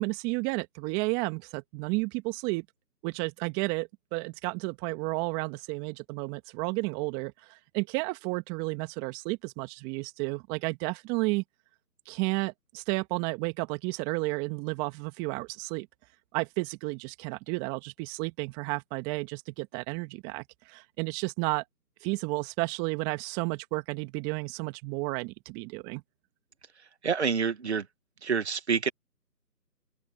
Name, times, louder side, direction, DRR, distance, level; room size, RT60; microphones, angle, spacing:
voice 1, 0.0-2.7 3.0-11.4 12.1-15.9 16.3-21.6 22.0-26.0, right 26 dB, 10° right, 2.1 m, -32 dB
voice 2, 27.0-27.8 28.2-28.9, right 6 dB, 40° right, 2.2 m, -27 dB
open air
figure-of-eight pair, 155°, 49 cm